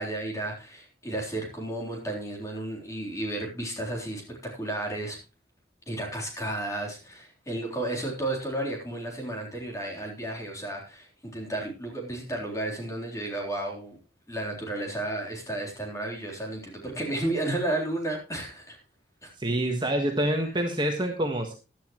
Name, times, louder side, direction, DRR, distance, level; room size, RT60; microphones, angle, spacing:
voice 1, 0.0-5.2 5.9-14.0 14.3-18.8 19.2-19.3, right 1 dB, 15° left, 0 dB, 3.7 m, -33 dB
voice 2, 19.4-21.5, right 1 dB, 25° right, 2 dB, 1.5 m, -26 dB
15.0 x 11.5 x 3.1 m, 0.30 s
head